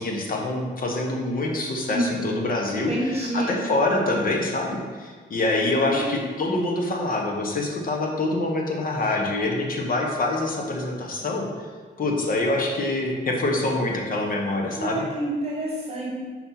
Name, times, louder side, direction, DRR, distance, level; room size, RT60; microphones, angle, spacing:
voice 1, 0.0-11.7 12.0-15.0, left 2 dB, 45° left, 0 dB, 1.1 m, -25 dB
voice 2, 2.9-3.5 5.8-6.0 14.8-16.1, right 1 dB, 30° right, -3 dB, 1.2 m, -28 dB
5.2 x 4.3 x 4.4 m, 1.5 s
cardioid pair, 90°, 20 cm